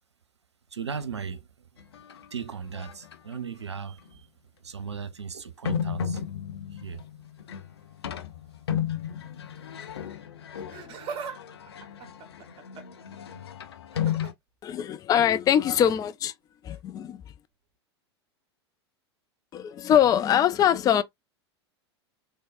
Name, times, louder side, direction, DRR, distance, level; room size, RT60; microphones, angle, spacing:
voice 1, 0.7-1.5 2.3-4.3 4.6-6.2 6.7-7.0, right 6 dB, 75° right, 0.7 m, -37 dB
sound 1, 1.8-2.3 2.7-3.3 4.1-4.2 5.6-14.3, left 8 dB, 65° left, 0.8 m, -34 dB
Laughter, 10.5-11.4 11.7-13.0 13.9-14.3 15.6-15.8 16.7-16.8, right 6 dB, 35° right, 1.2 m, -39 dB
voice 2, 14.6-16.3 16.6-17.2 19.5-21.0, left 10 dB, 25° left, 0.5 m, -23 dB
3.7 x 3.5 x 2.6 m
figure-of-eight pair, 85°, 14 cm